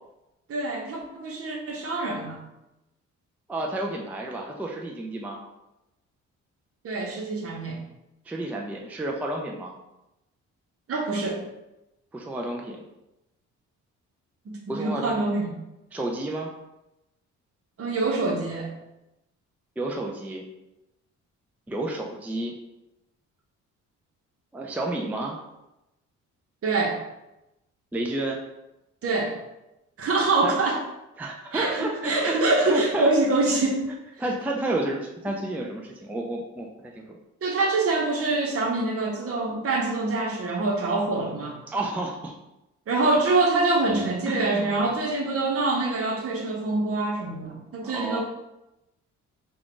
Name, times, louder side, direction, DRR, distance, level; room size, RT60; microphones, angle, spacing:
voice 1, 0.5-2.4 6.8-7.8 10.9-11.4 14.5-15.5 17.8-18.7 26.6-27.0 29.0-29.3 30.0-30.8 31.5-33.8 37.4-41.6 42.9-48.2, right 3 dB, 50° right, 0 dB, 0.9 m, -25 dB
voice 2, 3.5-5.4 8.3-9.7 12.1-12.8 14.7-15.3 15.9-16.5 19.8-20.4 21.7-22.5 24.5-25.4 27.9-28.4 30.4-30.5 31.2-33.1 34.2-36.7 37.0-37.2 37.4-37.6 41.7-42.3 44.3-45.1 47.8-48.2, right 2 dB, 5° right, 0 dB, 0.4 m, -31 dB
3.5 x 2.4 x 3.8 m, 0.94 s
cardioid pair, 90°, 30 cm